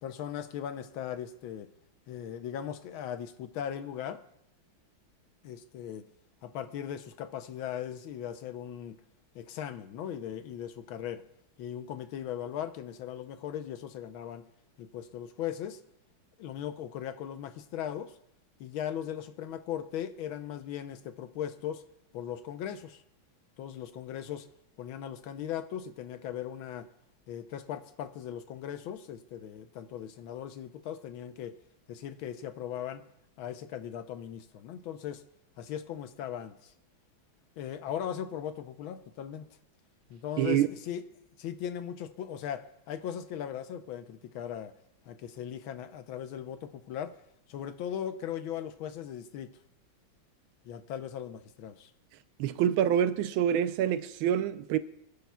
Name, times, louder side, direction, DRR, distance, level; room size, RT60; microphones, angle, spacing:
voice 1, 0.0-1.7 2.1-4.2 5.4-6.1 6.4-9.0 9.3-11.2 11.6-14.4 14.8-15.8 16.4-18.1 18.6-21.8 22.1-23.0 23.6-24.5 24.8-26.9 27.3-31.5 31.9-33.1 33.4-35.2 35.6-36.7 37.6-39.5 40.1-41.0 41.4-44.7 45.1-47.1 47.5-49.6 50.6-51.9, left 9 dB, 80° left, 1.5 m, -38 dB
voice 2, 40.4-40.7 52.4-54.8, right 10 dB, 80° right, 1.4 m, -26 dB
27.0 x 10.5 x 2.3 m
omnidirectional pair, 2.2 m